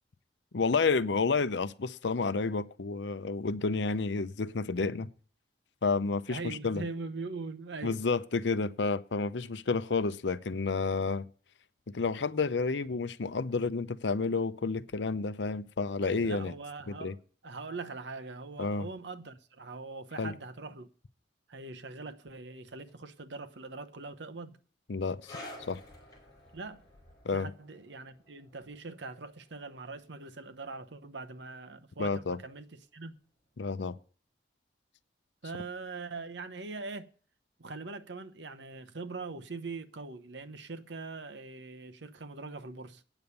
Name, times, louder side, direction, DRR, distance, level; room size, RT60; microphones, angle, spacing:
voice 1, 0.5-5.1 5.8-6.8 7.8-11.3 11.9-16.5 16.9-17.1 18.6-18.9 20.2-20.3 24.9-25.4 25.7-25.8 27.2-27.5 32.0-32.4 33.6-34.0, left 4 dB, 85° left, 0.6 m, -30 dB
voice 2, 6.3-8.0 16.0-17.1 17.4-20.9 21.5-24.6 26.5-26.8 27.3-32.7 32.9-33.1 35.4-37.1 37.6-43.0, right 3 dB, 85° right, 0.9 m, -42 dB
sound 1, 22.9-23.0 24.9-27.3 27.7-27.8 28.6-28.7, equal, 25° right, 4.6 m, -62 dB
sound 2, 25.2-32.2 32.5-32.7 33.4-33.5, left 1 dB, 20° left, 4.5 m, -52 dB
9.1 x 7.0 x 8.1 m
head